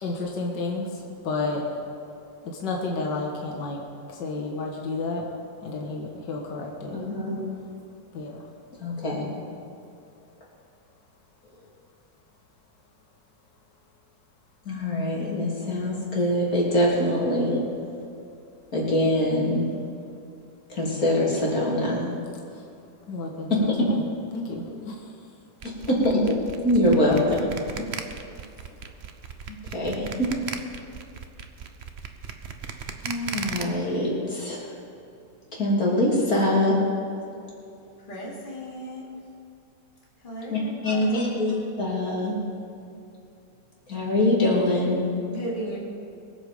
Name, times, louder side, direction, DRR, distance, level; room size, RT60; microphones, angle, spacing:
voice 1, 0.0-1.7 2.5-3.8 4.1-5.3 5.6-7.0 8.1-8.5 22.5-22.6 23.1-24.0 24.3-25.2 27.1-27.2, left 3 dB, 65° left, 0 dB, 2.0 m, -31 dB
voice 2, 6.9-7.4 8.8-9.3 14.7-17.6 18.7-19.7 20.7-22.0 23.5-23.9 25.9-26.2 26.6-27.5 29.5-30.3 33.0-34.6 35.5-36.7 40.5-42.3 43.9-45.0, left 1 dB, 50° left, -4 dB, 3.6 m, -24 dB
sound 1, 25.6-33.6, right 6 dB, 50° right, 0.8 m, -36 dB
voice 3, 38.1-39.1 40.2-41.3 45.3-45.8, right 1 dB, 25° left, -5 dB, 2.8 m, -35 dB
22.5 x 7.9 x 5.2 m, 2.6 s
omnidirectional pair, 2.0 m